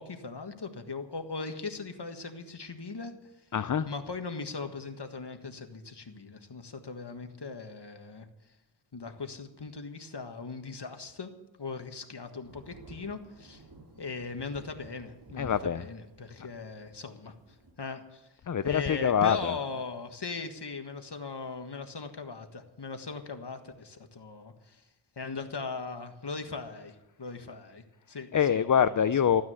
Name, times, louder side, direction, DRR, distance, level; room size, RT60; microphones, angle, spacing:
voice 1, 0.0-3.2 3.9-8.3 8.9-11.3 11.6-13.6 14.0-17.3 17.8-18.3 18.6-24.8 25.2-28.6, left 4 dB, 65° left, 6 dB, 1.6 m, -39 dB
voice 2, 3.5-3.9 15.4-15.9 18.4-19.6 28.3-29.4, left 8 dB, 45° left, 13 dB, 0.5 m, -25 dB
sound 1, 12.4-17.7, right 2 dB, 50° right, 2.4 m, -53 dB
14.5 x 9.4 x 7.8 m, 0.93 s
wide cardioid pair, 55°, 44 cm